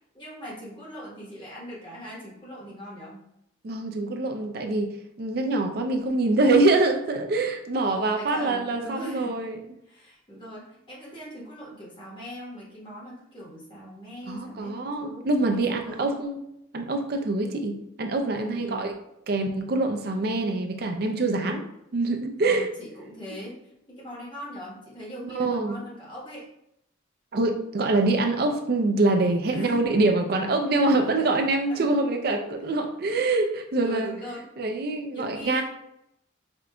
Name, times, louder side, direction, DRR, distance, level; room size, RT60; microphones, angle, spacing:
voice 1, 0.1-3.2 7.8-9.4 9.8-16.2 18.4-18.9 21.4-21.6 22.4-23.6 23.9-26.5 29.5-29.8 31.7-31.9 33.8-34.5 35.1-35.6, equal, 25° left, -6 dB, 1.2 m, -40 dB
voice 2, 3.6-9.6 14.3-16.4 16.7-18.9 19.3-21.6 21.9-22.7 25.3-25.8 27.3-34.1 34.6-35.6, right 2 dB, 50° right, 5 dB, 0.4 m, -25 dB
5.0 x 2.4 x 2.2 m, 0.80 s
head